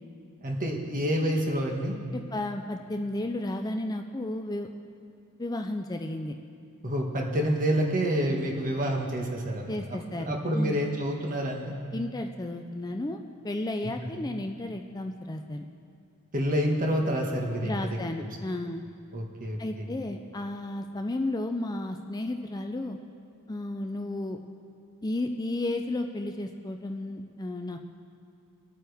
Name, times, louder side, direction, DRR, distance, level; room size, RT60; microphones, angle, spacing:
voice 1, 0.4-2.0 6.8-9.8 10.2-11.7 13.8-13.9 16.3-18.3 19.1-19.9, equal, 40° right, 0 dB, 1.7 m, -28 dB
voice 2, 2.1-4.7 5.4-6.4 9.7-10.8 11.9-15.7 17.6-18.8 19.6-23.0 23.5-24.4 25.0-27.8, left 1 dB, 20° left, 5 dB, 0.5 m, -33 dB
24.5 x 8.8 x 3.5 m, 2.5 s
head